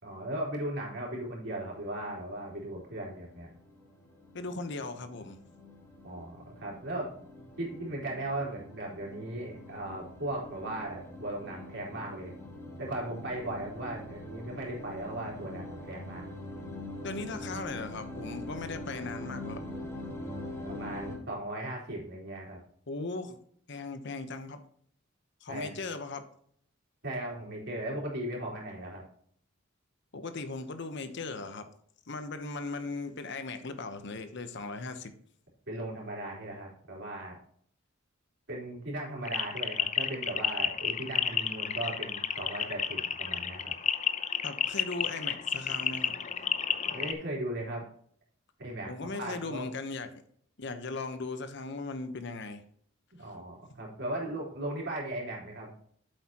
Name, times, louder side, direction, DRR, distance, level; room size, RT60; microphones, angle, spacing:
voice 1, 0.0-3.5 6.0-7.1 7.6-12.3 12.8-16.3 20.6-22.6 25.5-25.8 27.0-29.0 35.7-37.4 38.5-43.7 46.9-47.8 48.6-49.7 53.2-55.7, right 1 dB, 60° right, -3 dB, 4.0 m, -37 dB
sound 1, 1.7-21.2, left 1 dB, 15° left, 2.4 m, -44 dB
voice 2, 4.3-5.4 17.0-19.6 22.9-23.4 23.7-24.6 25.4-26.2 30.1-31.7 32.1-35.1 44.4-46.2 48.9-50.2 50.6-52.6, left 3 dB, 60° left, 9 dB, 1.0 m, -38 dB
sound 2, 39.2-47.1, left 7 dB, 35° left, 0.7 m, -31 dB
8.5 x 8.0 x 3.0 m, 0.62 s
head